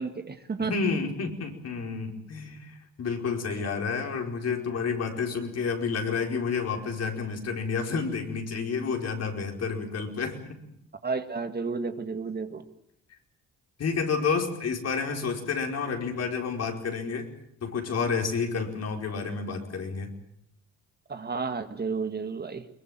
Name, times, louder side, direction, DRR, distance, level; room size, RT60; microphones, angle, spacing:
voice 1, 0.0-0.7 11.0-12.6 21.1-22.7, right 4 dB, 35° right, 9 dB, 2.0 m, -32 dB
voice 2, 0.6-10.6 13.8-17.3 17.6-20.1, left 5 dB, 55° left, 3 dB, 4.9 m, -30 dB
22.0 x 21.0 x 9.1 m, 0.77 s
cardioid pair, 90°, 30 cm